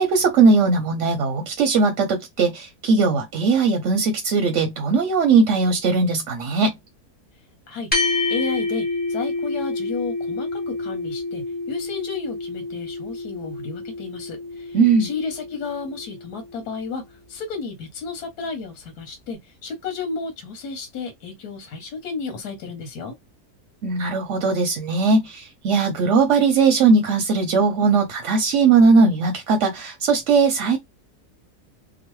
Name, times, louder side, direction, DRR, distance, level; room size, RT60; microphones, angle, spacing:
voice 1, 0.0-6.7 14.7-15.1 23.8-30.8, right 4 dB, 60° right, 0.8 m, -19 dB
voice 2, 7.7-23.1, left 5 dB, 85° left, 1.3 m, -33 dB
sound 1, 7.9-16.6, left 2 dB, 10° left, 0.8 m, -28 dB
3.0 x 2.2 x 3.0 m
omnidirectional pair, 1.6 m